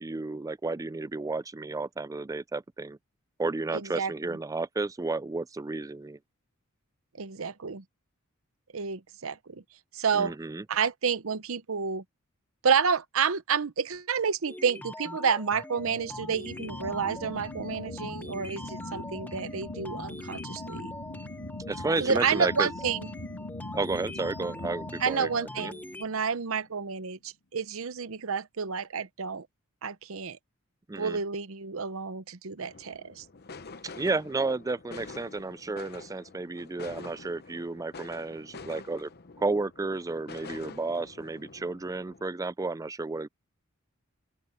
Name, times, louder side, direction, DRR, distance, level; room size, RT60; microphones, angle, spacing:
voice 1, 0.0-3.0 3.4-6.2 10.1-10.7 21.7-22.7 23.7-25.3 25.6-25.7 30.9-31.2 33.8-39.1 39.4-43.3, right 3 dB, 15° right, 0.4 m, -32 dB
voice 2, 3.7-4.1 7.1-7.8 8.7-9.6 9.9-10.3 10.7-12.0 12.6-20.9 22.0-23.0 25.0-29.5 29.8-30.4 31.0-33.2, right 6 dB, 70° right, 0.8 m, -30 dB
sound 1, 14.5-26.1, left 1 dB, 10° left, 0.8 m, -42 dB
sound 2, 15.8-26.7, left 2 dB, 85° left, 2.6 m, -42 dB
sound 3, 32.6-42.3, left 4 dB, 50° left, 0.9 m, -47 dB
open air
head